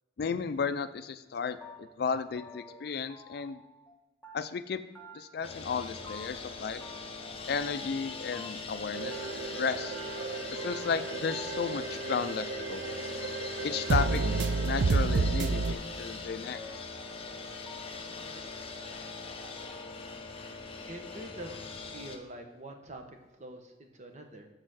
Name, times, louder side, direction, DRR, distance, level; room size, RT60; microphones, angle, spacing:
voice 1, 0.2-3.6 4.3-4.8 5.1-6.8 7.5-9.2 9.5-10.0 10.5-13.0 13.6-14.2 14.6-16.8, left 5 dB, 60° left, 12 dB, 0.4 m, -34 dB
sound 1, 1.6-4.0 4.2-4.7 5.0-5.4 5.7-6.5 6.8-8.8 9.1-20.1, equal, 10° left, 1.1 m, -50 dB
sound 2, 5.4-22.2, left 4 dB, 30° left, 0.7 m, -41 dB
sound 3, 8.9-15.7, right 3 dB, 75° right, 0.5 m, -31 dB
voice 2, 20.9-24.5, right 1 dB, 40° right, 4 dB, 0.9 m, -45 dB
6.6 x 4.0 x 6.3 m, 1.2 s
head